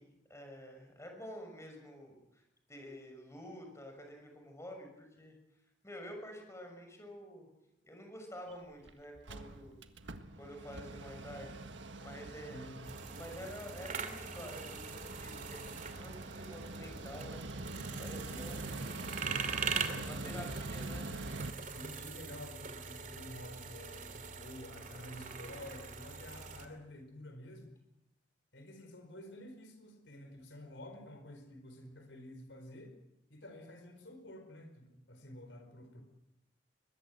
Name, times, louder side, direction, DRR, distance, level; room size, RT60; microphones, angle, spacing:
voice 1, 0.0-2.4 2.7-5.4 5.8-7.5 7.8-9.8 10.4-11.5 11.9-12.6 13.0-17.4 18.0-19.0 20.0-21.1, equal, 15° left, 3 dB, 6.3 m, -49 dB
Mechanical fan, 8.5-8.6 8.9-9.0 9.2-21.5, right 2 dB, 70° right, 1.7 m, -45 dB
voice 2, 12.4-12.9 18.2-18.8 19.9-20.5 21.5-27.7 28.5-33.0 33.3-36.0, left 1 dB, 70° left, 5 dB, 4.5 m, -50 dB
sound 1, 12.8-26.7, right 5 dB, 45° right, 2.7 m, -42 dB
22.5 x 21.5 x 7.9 m, 0.90 s
head